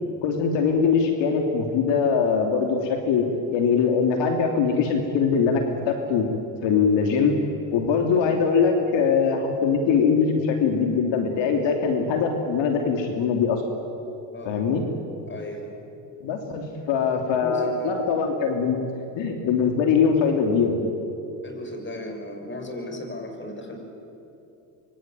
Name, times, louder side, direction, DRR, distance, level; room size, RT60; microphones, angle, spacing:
voice 1, 0.2-3.2 3.5-6.3 6.6-7.3 7.7-13.6 14.4-14.8 16.2-18.8 19.1-20.8, left 6 dB, 70° left, 3 dB, 3.3 m, -22 dB
voice 2, 14.3-14.7 15.3-15.8 17.3-17.9 21.4-23.8, left 1 dB, 25° left, 5 dB, 6.3 m, -36 dB
25.5 x 25.0 x 9.2 m, 2.9 s
supercardioid pair, 95°, 46 cm